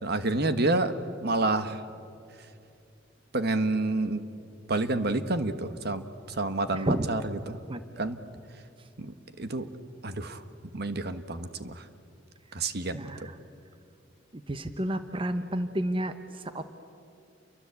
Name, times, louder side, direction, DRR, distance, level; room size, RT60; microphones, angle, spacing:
voice 1, 0.0-0.9 1.2-1.8 3.3-4.2 4.7-7.2 7.5-7.6 8.0-8.2 9.0-9.7 10.0-10.4 10.7-11.8 12.5-13.3, right 2 dB, 60° right, 10 dB, 1.4 m, -29 dB
voice 2, 6.7-7.1 7.7-7.8 8.1-8.2 12.9-13.4 14.3-16.6, right 1 dB, 30° right, 9 dB, 1.0 m, -31 dB
29.5 x 24.0 x 8.4 m, 2.6 s
head